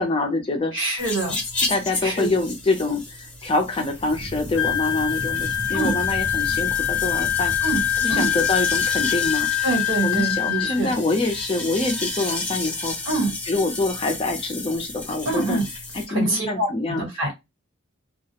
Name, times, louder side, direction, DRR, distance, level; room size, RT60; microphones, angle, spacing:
voice 1, 0.0-0.7 1.7-7.5 8.0-9.5 10.0-13.0 13.5-15.6 15.9-17.1, left 2 dB, 25° left, 3 dB, 0.4 m, -25 dB
voice 2, 0.7-1.4 2.0-2.3 5.7-6.0 7.6-7.8 8.1-8.3 9.6-10.9 13.1-13.3 15.2-15.6 16.1-17.3, right 2 dB, 70° right, 0 dB, 1.3 m, -25 dB
sound 1, 1.0-16.1, left 2 dB, 5° left, 0.7 m, -32 dB
sound 2, 3.8-10.2, equal, 45° right, 0.7 m, -37 dB
Wind instrument woodwind instrument, 4.6-10.8, left 11 dB, 85° left, 0.5 m, -24 dB
2.3 x 2.0 x 2.8 m, 0.21 s
head